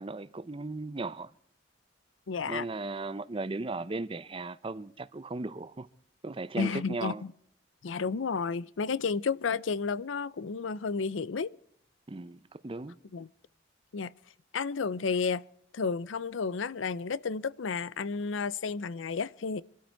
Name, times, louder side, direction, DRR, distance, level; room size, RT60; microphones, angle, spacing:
voice 1, 0.0-1.3 2.5-5.9 6.2-7.2 12.1-13.0, right 2 dB, 30° right, 0.6 m, -36 dB
voice 2, 2.3-2.7 6.6-7.3 7.8-11.6 13.1-13.3 13.9-14.1 14.5-15.4 15.7-19.6, left 5 dB, 90° left, 0.6 m, -32 dB
23.5 x 13.0 x 4.6 m
head